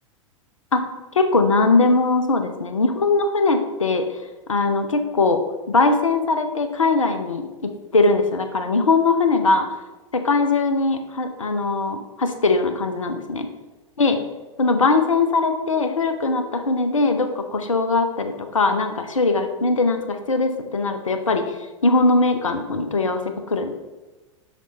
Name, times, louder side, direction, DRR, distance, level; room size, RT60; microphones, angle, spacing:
voice 1, 1.1-4.1 4.5-9.7 10.1-13.5 14.0-14.2 14.6-21.5 21.8-23.2 23.5-23.7, left 3 dB, 80° left, 7 dB, 0.9 m, -20 dB
6.4 x 6.3 x 4.0 m, 1.1 s
figure-of-eight pair, 95°, 17 cm